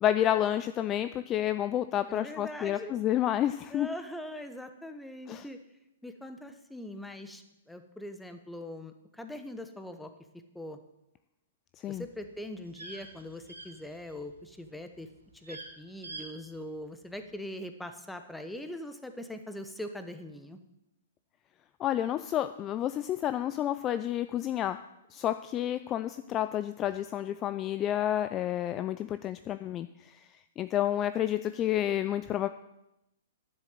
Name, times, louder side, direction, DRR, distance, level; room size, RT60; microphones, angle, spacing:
voice 1, 0.0-3.9 5.3-5.5 11.8-12.0 21.8-24.8 25.1-30.3 30.6-32.5, left 11 dB, 25° left, 12 dB, 0.4 m, -30 dB
voice 2, 2.1-2.9 3.7-5.6 6.0-10.1 10.5-10.8 11.9-15.1 15.4-20.6, left 1 dB, 5° left, 8 dB, 1.1 m, -42 dB
sound 1, 11.9-14.4 14.6-15.0 15.3-15.7 16.0-16.3 16.5-16.6, right 2 dB, 85° right, 2.9 m, -45 dB
11.0 x 7.4 x 8.0 m, 0.89 s
figure-of-eight pair, 115°, 0 cm